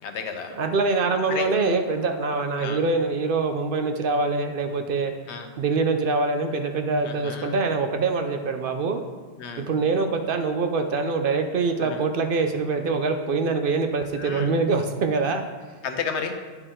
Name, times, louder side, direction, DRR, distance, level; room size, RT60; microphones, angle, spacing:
voice 1, 0.0-0.6 1.3-1.5 2.6-2.8 5.3-5.5 7.0-7.6 9.4-9.6 11.8-12.0 14.2-14.6 15.8-16.4, left 6 dB, 85° left, 6 dB, 1.0 m, -32 dB
voice 2, 0.5-5.1 5.6-9.0 9.6-15.4, right 4 dB, 60° right, 6 dB, 0.7 m, -24 dB
9.8 x 4.5 x 3.7 m, 1.4 s
omnidirectional pair, 1.1 m